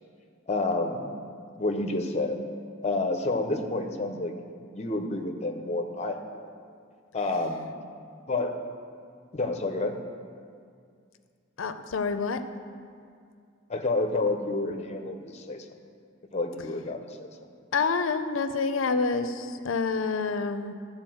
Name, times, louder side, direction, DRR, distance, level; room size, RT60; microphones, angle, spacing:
voice 1, 0.5-1.1 1.6-2.4 2.8-4.3 4.7-6.4 7.1-7.7 8.3-8.6 9.3-10.0 13.7-15.7 16.3-17.3, left 2 dB, 35° left, 5 dB, 0.7 m, -29 dB
voice 2, 11.6-12.4 17.7-20.7, left 4 dB, 90° left, 9 dB, 0.6 m, -27 dB
11.5 x 4.2 x 7.7 m, 2.2 s
head